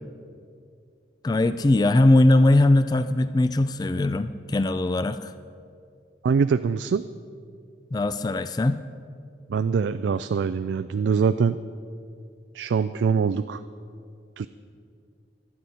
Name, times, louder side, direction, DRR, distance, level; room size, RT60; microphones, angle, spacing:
voice 1, 1.2-5.3 7.9-8.8, left 2 dB, 25° left, 12 dB, 0.3 m, -20 dB
voice 2, 6.2-7.0 9.5-11.6 12.5-13.6 14.4-14.5, right 6 dB, 90° right, 11 dB, 0.3 m, -23 dB
24.5 x 9.3 x 4.3 m, 2.4 s
head